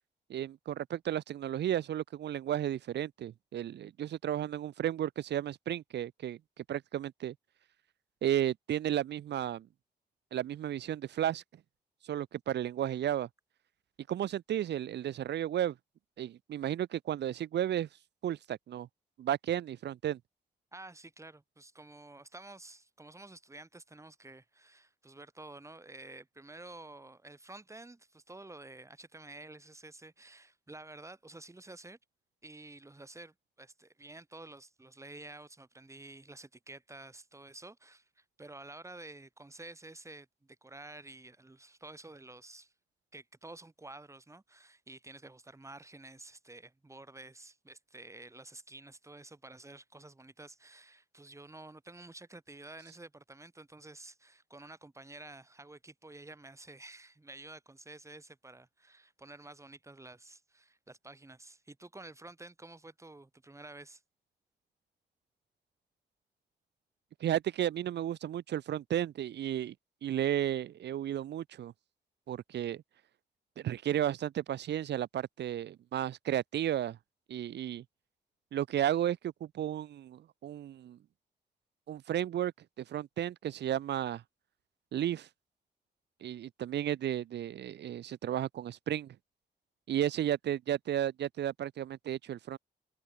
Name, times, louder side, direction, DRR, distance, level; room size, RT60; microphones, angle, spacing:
voice 1, 0.3-7.3 8.2-9.7 10.3-11.4 12.0-13.3 14.1-15.7 16.2-17.9 18.2-18.9 19.2-20.2 67.2-69.7 70.0-71.7 72.3-72.8 73.6-77.0 77.3-77.8 78.5-81.0 81.9-82.5 82.8-84.2 84.9-85.3 86.2-89.1 89.9-92.6, right 11 dB, 90° right, 1.5 m, -33 dB
voice 2, 20.7-32.0 32.4-42.7 43.1-64.0, right 2 dB, 15° right, 5.4 m, -51 dB
cardioid pair, 110°, 17 cm